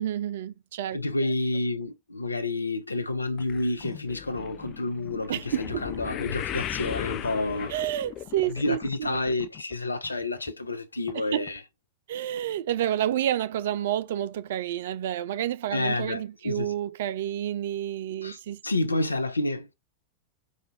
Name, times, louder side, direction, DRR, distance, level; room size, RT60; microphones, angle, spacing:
voice 1, 0.0-1.0 5.3-5.8 7.7-9.1 11.3-11.4 12.1-18.6, right 11 dB, 55° right, 0.4 m, -29 dB
voice 2, 0.9-7.7 8.5-11.6 15.7-16.7 18.2-19.7, left 2 dB, 80° left, 0.7 m, -29 dB
sound 1, 3.4-9.8 10.0-10.5 11.1-11.2 11.5-11.6, left 11 dB, 35° left, 0.4 m, -37 dB
5.0 x 2.5 x 3.9 m
figure-of-eight pair, 90°, 0 cm